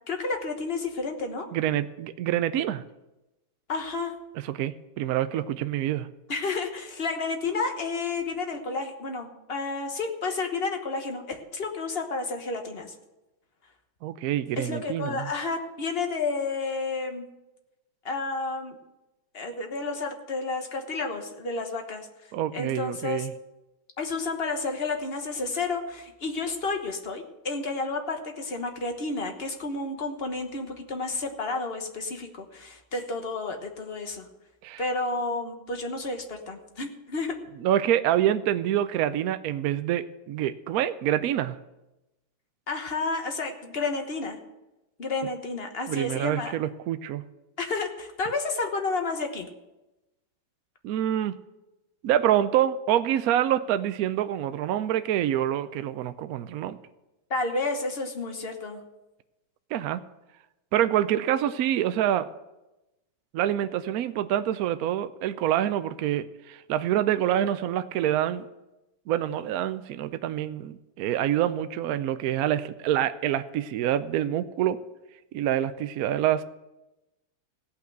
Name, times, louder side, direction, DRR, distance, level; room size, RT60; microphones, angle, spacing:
voice 1, 0.0-1.5 3.7-4.1 6.3-12.9 14.6-17.2 18.0-18.8 19.3-23.3 24.0-34.2 34.8-37.4 42.7-44.4 45.0-46.5 47.6-49.5 57.3-58.8, left 3 dB, 35° left, 4 dB, 1.2 m, -31 dB
voice 2, 1.5-2.8 4.5-6.1 14.0-15.3 22.3-23.3 34.6-34.8 37.6-41.6 45.9-47.2 50.8-51.4 52.0-56.8 59.7-60.0 60.7-62.3 63.3-68.5 69.1-74.8 75.3-76.4, right 11 dB, 85° right, 12 dB, 0.7 m, -26 dB
16.5 x 5.9 x 7.9 m, 1.0 s
omnidirectional pair, 2.2 m